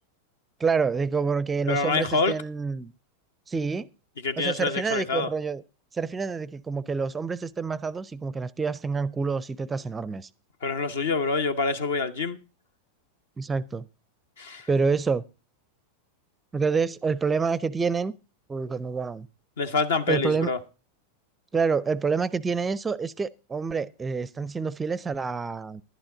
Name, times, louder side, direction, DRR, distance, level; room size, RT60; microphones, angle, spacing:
voice 1, 0.6-2.9 3.5-3.9 4.4-5.6 5.9-10.3 13.4-13.9 14.7-15.2 16.5-18.1 18.5-19.3 20.1-20.5 21.5-25.8, right 5 dB, 15° right, 0.5 m, -27 dB
voice 2, 1.7-2.3 4.2-5.3 10.6-12.4 14.4-14.7 19.6-20.6, left 4 dB, 60° left, 0.9 m, -26 dB
11.5 x 11.0 x 3.8 m
figure-of-eight pair, 90°, 0 cm